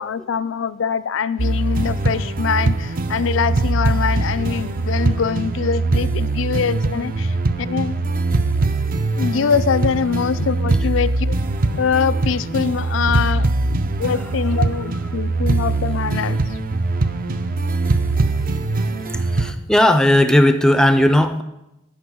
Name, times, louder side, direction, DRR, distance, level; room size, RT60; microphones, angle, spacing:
voice 1, 0.0-7.9 9.2-11.4 11.7-13.5 14.0-16.6, left 6 dB, 90° left, 14 dB, 0.4 m, -23 dB
sound 1, 1.4-19.5, right 2 dB, 50° right, 0.5 m, -21 dB
voice 2, 19.1-21.4, left 1 dB, 5° left, 8 dB, 0.4 m, -16 dB
12.0 x 5.0 x 6.2 m, 0.91 s
head